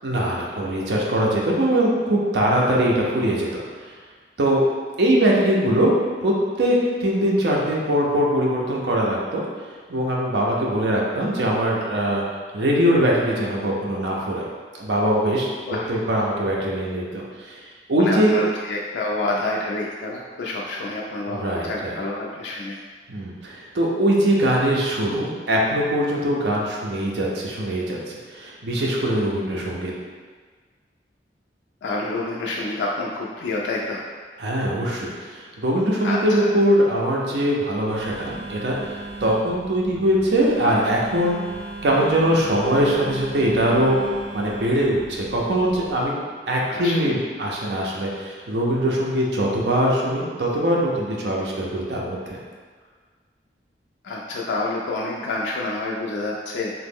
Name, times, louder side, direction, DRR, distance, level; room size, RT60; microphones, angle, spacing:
voice 1, 0.0-3.5 4.4-4.6 5.0-5.9 6.2-6.7 7.0-9.4 9.9-12.2 12.5-14.5 14.8-15.5 15.9-17.6 17.9-18.4 21.3-21.9 23.1-29.9 34.4-41.4 41.8-46.1 46.5-52.4, right 1 dB, 65° right, -3 dB, 0.6 m, -22 dB
voice 2, 18.0-22.8 31.8-34.0 36.0-36.5 46.7-47.2 54.0-56.7, left 2 dB, 75° left, -3 dB, 0.3 m, -28 dB
Telephone, 37.9-46.1, right 2 dB, 30° right, 1.2 m, -37 dB
3.0 x 2.1 x 3.5 m, 1.5 s
head